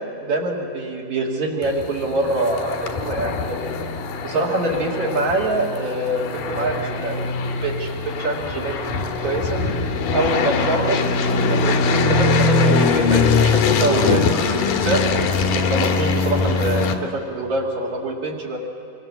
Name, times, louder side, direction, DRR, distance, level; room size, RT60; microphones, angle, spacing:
voice 1, 0.0-3.8 4.2-9.6 10.1-11.1 11.5-15.0 15.5-18.6, right 2 dB, 60° right, -3 dB, 3.9 m, -25 dB
sound 1, 1.6-16.9, left 4 dB, 85° left, 3.3 m, -22 dB
25.5 x 24.5 x 7.2 m, 2.7 s
omnidirectional pair, 3.9 m